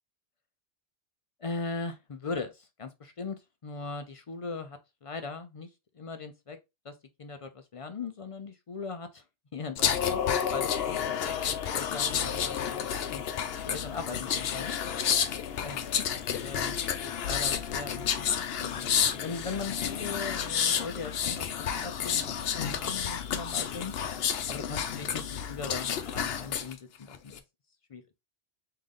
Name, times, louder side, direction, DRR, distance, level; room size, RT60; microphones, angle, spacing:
voice 1, 1.4-3.4 3.6-5.7 6.0-6.6 6.8-6.9 7.2-9.2 9.5-10.2 10.5-11.3 11.6-12.8 13.1-13.2 13.6-15.1 15.4-15.9 16.4-16.8 17.0-18.3 18.6-23.9 24.5-25.2 25.5-27.4 27.9-28.0, left 4 dB, 50° left, 0.4 m, -39 dB
sound 1, 9.8-26.7 27.1-27.4, left 8 dB, 65° left, 0.8 m, -30 dB
3.8 x 3.2 x 3.6 m
omnidirectional pair, 1.2 m